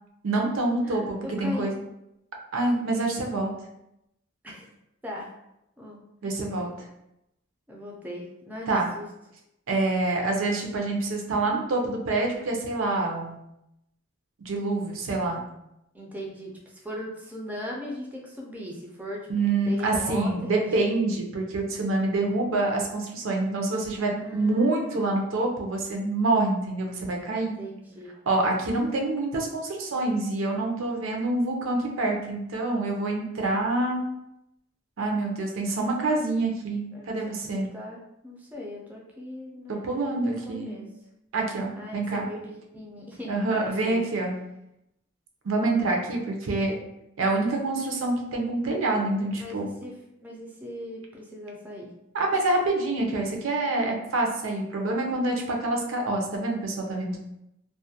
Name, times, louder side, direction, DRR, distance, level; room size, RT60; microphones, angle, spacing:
voice 1, 0.2-1.7 2.5-3.5 6.2-6.9 8.7-8.9 9.7-13.4 14.4-15.4 19.3-27.5 28.3-34.0 35.0-37.7 39.7-40.7 41.3-42.3 43.3-44.4 45.4-46.8 47.2-49.7 52.1-57.2, right 2 dB, 75° right, 1 dB, 0.5 m, -26 dB
voice 2, 0.8-1.7 4.4-4.7 5.0-5.3 5.8-6.0 7.7-8.7 9.0-9.1 15.9-16.5 16.8-21.0 24.0-25.1 27.4-28.2 36.9-40.9 41.8-44.0 49.3-49.9 50.2-51.9, left 1 dB, 10° right, -2 dB, 0.4 m, -39 dB
2.3 x 2.1 x 2.7 m, 0.84 s
head